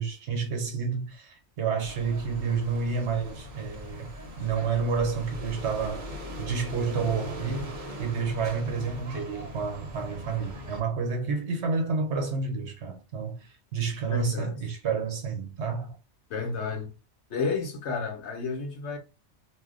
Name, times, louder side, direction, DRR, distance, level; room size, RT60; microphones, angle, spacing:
voice 1, 0.0-4.1 4.4-6.1 6.4-16.0, right 5 dB, 70° right, 1.1 m, -30 dB
sound 1, 1.8-10.8, left 1 dB, 45° right, 0.9 m, -40 dB
voice 2, 14.1-14.5 16.3-16.9 17.3-19.0, left 4 dB, 70° left, 1.0 m, -31 dB
2.6 x 2.1 x 3.7 m
omnidirectional pair, 1.2 m